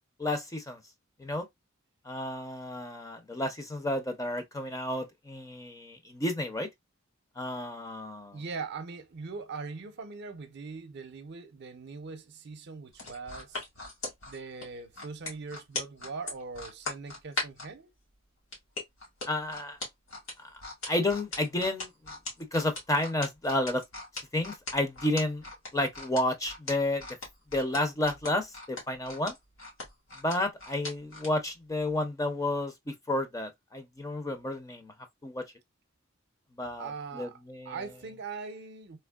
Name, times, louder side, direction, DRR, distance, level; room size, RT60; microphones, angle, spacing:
voice 1, 0.2-0.8 1.2-1.5 2.1-6.7 7.4-8.4 19.3-19.8 20.4-20.5 20.9-21.9 22.5-23.8 24.3-25.4 25.7-27.1 27.5-29.3 30.2-34.9 35.2-35.4 36.6-37.8, left 1 dB, 15° left, 0.6 m, -31 dB
voice 2, 8.3-13.6 14.3-17.9 36.8-37.4 37.6-39.0, right 4 dB, 55° right, 0.6 m, -41 dB
sound 1, 12.9-17.7 18.5-31.3 31.8-31.9, left 2 dB, 90° left, 2.1 m, -39 dB
3.3 x 3.1 x 2.3 m
head